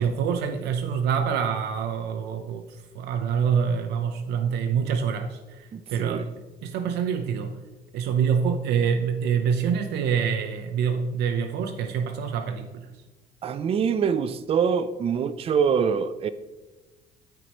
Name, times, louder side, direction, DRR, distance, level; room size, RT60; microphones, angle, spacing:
voice 1, 0.0-6.3 6.6-7.6 7.9-12.9, right 7 dB, 80° right, 0.6 m, -26 dB
voice 2, 5.7-6.3 13.4-16.3, right 6 dB, 35° right, 0.4 m, -24 dB
13.5 x 4.7 x 3.0 m
cardioid pair, 110°, 17 cm